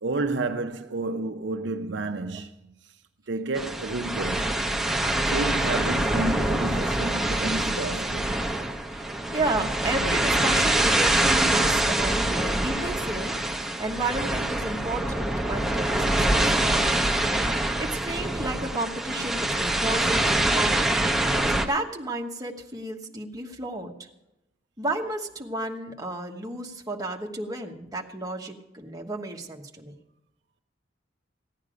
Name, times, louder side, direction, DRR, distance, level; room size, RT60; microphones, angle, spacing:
voice 1, 0.0-2.8 3.3-4.5 5.2-8.3, right 3 dB, 65° right, 0.7 m, -31 dB
sound 1, 3.6-21.7, right 1 dB, ahead, 0.9 m, -25 dB
voice 2, 8.9-13.3 13.8-17.0 17.5-20.8 21.5-23.9 24.8-29.9, right 2 dB, 20° right, 1.2 m, -32 dB
15.5 x 9.6 x 5.1 m
head